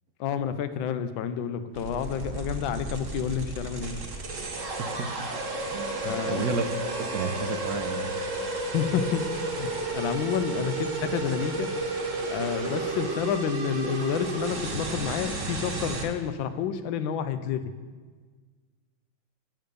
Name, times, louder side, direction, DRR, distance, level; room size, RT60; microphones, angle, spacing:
voice 1, 0.2-4.0 6.0-6.4 8.7-9.7 9.9-11.7 12.3-17.6, left 8 dB, 90° left, 10 dB, 1.4 m, -29 dB
sound 1, 1.7-16.0, right 2 dB, 45° right, 1.3 m, -32 dB
voice 2, 5.7-6.7 7.0-8.3, right 5 dB, 65° right, 6 dB, 1.0 m, -32 dB
9.0 x 8.3 x 5.1 m, 1.5 s
omnidirectional pair, 2.0 m